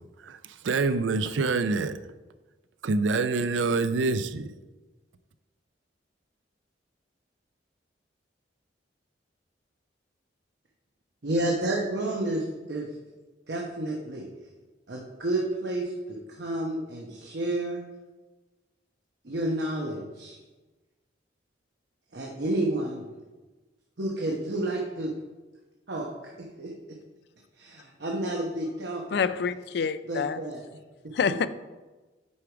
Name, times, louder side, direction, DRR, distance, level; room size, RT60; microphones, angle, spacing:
voice 1, 0.6-2.0 2.8-4.5, right 3 dB, 85° right, 0.5 m, -26 dB
voice 2, 11.2-12.9 13.5-14.2 14.9-17.8 19.2-20.4 22.1-23.1 24.0-25.1 25.9-26.1 26.4-26.7 27.6-29.2 30.1-30.6, right 1 dB, 65° right, 1.0 m, -30 dB
voice 3, 29.1-30.4 31.1-31.5, left 6 dB, 60° left, 0.3 m, -27 dB
8.5 x 4.7 x 4.8 m
head